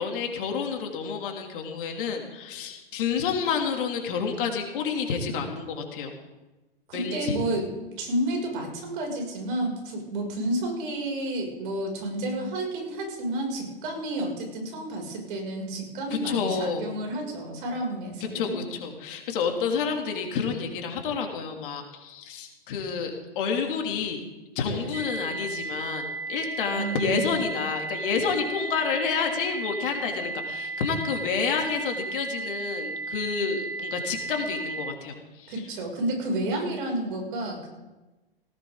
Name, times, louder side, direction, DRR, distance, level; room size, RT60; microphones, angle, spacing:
voice 1, 0.0-6.1 6.9-7.4 16.1-16.8 18.3-24.2 24.5-35.5, left 6 dB, 60° left, 2 dB, 3.2 m, -29 dB
voice 2, 6.9-7.7 8.0-18.6 24.6-25.0 26.7-27.5 35.5-37.7, right 1 dB, 60° right, 1 dB, 7.1 m, -31 dB
sound 1, 24.9-34.9, right 3 dB, 75° right, 3.3 m, -34 dB
18.5 x 16.5 x 4.0 m, 1.1 s
hypercardioid pair, 105°, 30 cm